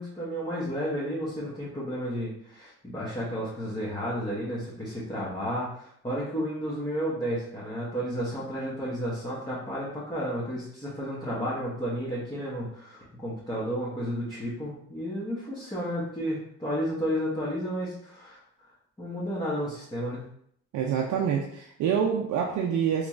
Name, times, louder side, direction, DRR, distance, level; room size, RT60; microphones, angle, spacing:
voice 1, 0.0-18.4 19.0-20.2, equal, 15° left, -9 dB, 1.3 m, -32 dB
voice 2, 20.7-23.1, right 7 dB, 75° right, 0 dB, 0.5 m, -26 dB
3.7 x 3.1 x 2.4 m, 0.68 s
cardioid pair, 90°, 30 cm